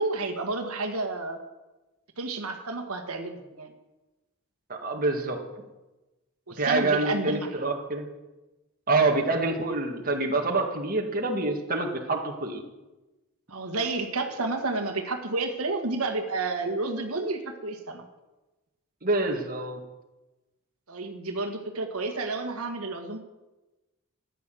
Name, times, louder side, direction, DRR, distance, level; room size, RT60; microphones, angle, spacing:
voice 1, 0.0-1.4 2.2-3.7 6.5-7.7 13.5-18.0 20.9-23.2, right 3 dB, 85° right, 5 dB, 1.8 m, -30 dB
voice 2, 4.7-5.4 6.6-8.1 8.9-12.6 19.0-19.8, right 3 dB, 40° right, 2 dB, 1.9 m, -26 dB
14.0 x 10.0 x 7.8 m, 1.1 s
head